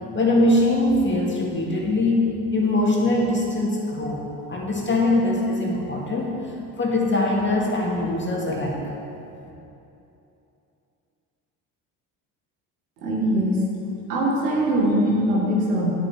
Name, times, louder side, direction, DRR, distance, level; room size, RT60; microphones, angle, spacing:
voice 1, 0.1-4.2 4.5-8.9, left 2 dB, 25° left, -2 dB, 2.1 m, -22 dB
voice 2, 13.0-13.6 14.1-15.9, right 1 dB, 80° right, -3 dB, 2.1 m, -22 dB
10.0 x 8.2 x 4.5 m, 2.8 s
hypercardioid pair, 60°, 48 cm